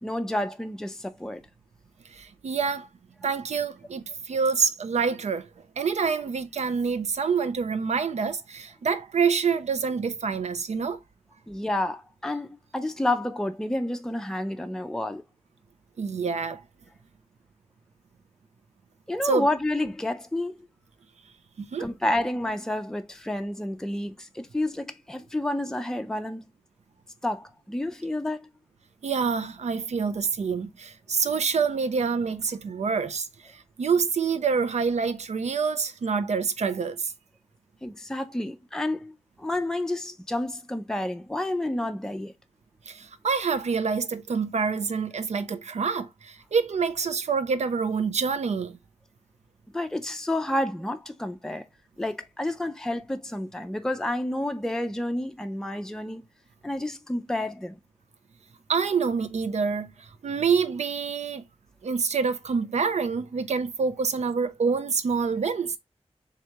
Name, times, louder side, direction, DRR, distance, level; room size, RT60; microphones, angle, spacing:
voice 1, 0.0-1.4 11.5-15.2 19.1-20.5 21.8-26.5 27.2-28.5 37.8-42.3 49.7-51.7 52.0-56.3 56.6-57.8, left 1 dB, 5° left, 0.5 m, -30 dB
voice 2, 2.1-2.9 3.2-5.5 5.8-11.0 16.0-16.6 19.2-19.5 21.7-21.9 29.0-33.3 33.5-37.1 42.9-48.8 58.7-61.4 61.8-65.8, right 5 dB, 85° right, 0.5 m, -27 dB
3.6 x 3.2 x 2.8 m
wide cardioid pair, 70°, 11 cm